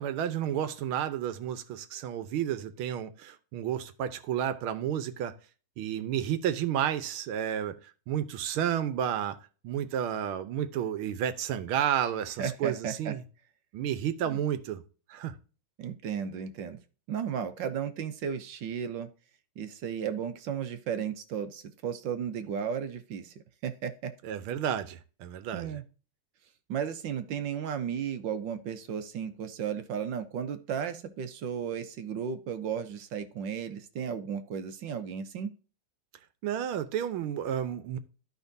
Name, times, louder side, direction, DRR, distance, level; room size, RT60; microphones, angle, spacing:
voice 1, 0.0-5.3 5.8-9.4 9.6-13.2 13.7-14.8 15.1-15.3 24.2-25.8 36.4-38.0, right 9 dB, 85° right, 1.6 m, -31 dB
voice 2, 12.4-13.1 14.3-14.4 15.8-16.8 17.1-19.1 19.6-23.3 23.6-24.1 25.5-25.8 26.7-35.5, right 8 dB, 65° right, 1.4 m, -34 dB
12.5 x 5.3 x 2.6 m
omnidirectional pair, 2.3 m